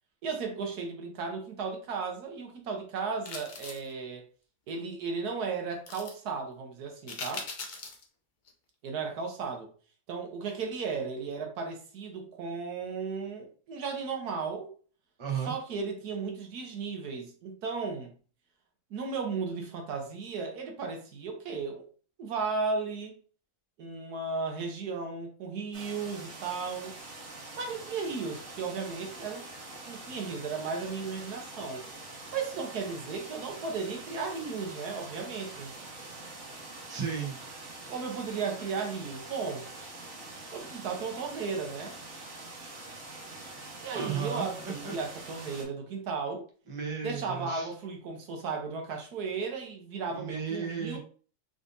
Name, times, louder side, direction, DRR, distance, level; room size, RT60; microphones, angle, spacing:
voice 1, 0.2-4.2 4.7-7.5 8.8-9.7 10.1-14.7 15.5-18.1 18.9-21.8 22.2-23.1 23.8-27.0 27.6-29.5 29.9-31.8 32.3-35.7 37.9-39.7 40.5-41.9 43.8-46.4 47.0-51.0, right 5 dB, 80° right, 1.4 m, -35 dB
sound 1, 3.2-3.9 5.9-6.1 7.1-8.0 8.5-8.6, left 4 dB, 50° left, 0.6 m, -40 dB
voice 2, 15.2-15.5 36.9-37.4 43.9-44.9 46.7-47.7 50.1-51.0, right 6 dB, 25° right, 0.8 m, -34 dB
sound 2, 25.7-45.6, right 2 dB, 55° right, 1.4 m, -45 dB
3.9 x 3.6 x 2.6 m
omnidirectional pair, 1.6 m